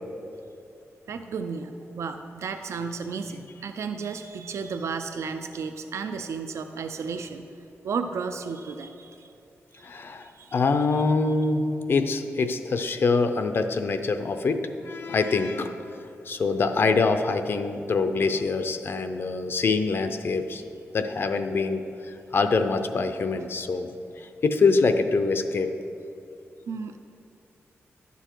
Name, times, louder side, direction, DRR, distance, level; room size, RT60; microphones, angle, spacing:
voice 1, 1.1-7.4 7.8-9.3 9.7-10.6 26.7-27.0, right 5 dB, 80° right, 7 dB, 0.4 m, -33 dB
voice 2, 9.8-15.8 16.3-20.6 20.9-23.9 24.2-25.7, left 4 dB, 50° left, 8 dB, 0.5 m, -25 dB
11.0 x 6.9 x 4.5 m, 2.6 s
wide cardioid pair, 145°, 5 cm